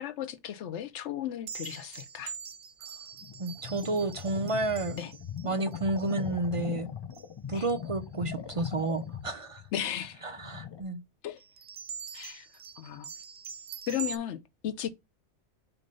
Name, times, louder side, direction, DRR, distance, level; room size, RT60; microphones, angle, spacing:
voice 1, 0.0-2.3 5.0-5.1 7.5-7.7 9.7-10.2 11.2-11.4 12.1-12.5 12.8-13.1 13.9-14.9, left 10 dB, 85° left, 1.0 m, -35 dB
sound 1, 1.5-6.2 7.1-7.3 7.6-8.0 8.7-8.9 11.4-14.2, right 7 dB, 85° right, 1.0 m, -44 dB
sound 2, 3.2-10.8, left 7 dB, 40° left, 0.3 m, -40 dB
voice 2, 3.4-5.0 5.4-6.9 7.5-9.6 10.2-11.0, right 2 dB, 45° right, 0.4 m, -31 dB
6.8 x 2.7 x 5.2 m
omnidirectional pair, 1.2 m